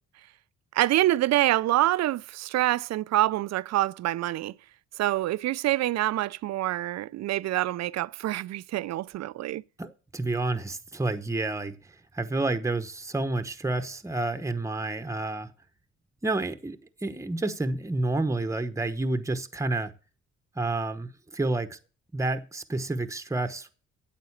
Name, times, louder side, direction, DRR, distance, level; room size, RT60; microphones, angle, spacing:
voice 1, 0.7-4.5 5.0-9.6, right 15 dB, 60° right, 0.5 m, -26 dB
voice 2, 9.8-15.5 16.2-19.9 20.5-21.8 22.1-23.7, right 2 dB, 10° right, 1.0 m, -29 dB
9.3 x 7.5 x 7.2 m
cardioid pair, 90°, 30 cm